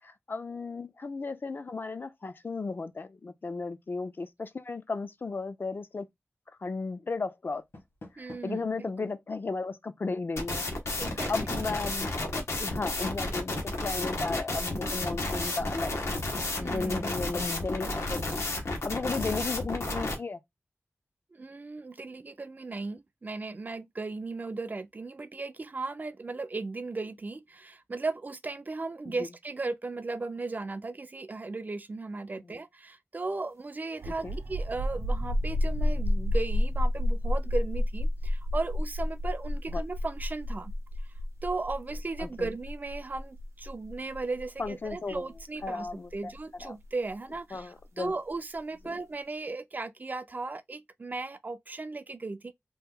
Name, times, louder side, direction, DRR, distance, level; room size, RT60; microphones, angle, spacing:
voice 1, 0.0-6.1 6.6-7.6 8.1-10.7 11.3-12.1 12.4-16.0 16.6-20.4 29.1-29.2 32.4-32.6 34.1-34.4 39.7-39.8 42.2-42.5 44.6-45.2 45.6-46.3 46.6-46.7 47.5-48.1 48.9-49.0, left 3 dB, 50° left, 0.4 m, -35 dB
Door, 7.5-8.7, left 1 dB, 70° left, 1.4 m, -50 dB
voice 2, 8.2-9.1 11.0-11.3 16.6-17.1 21.3-40.7 41.4-45.9 46.1-52.5, right 3 dB, 40° right, 0.3 m, -36 dB
sound 1, 10.4-20.1, left 2 dB, 85° left, 0.9 m, -32 dB
sound 2, 33.9-47.3, left 1 dB, 85° right, 0.7 m, -30 dB
2.9 x 2.1 x 3.6 m
wide cardioid pair, 85°, 5 cm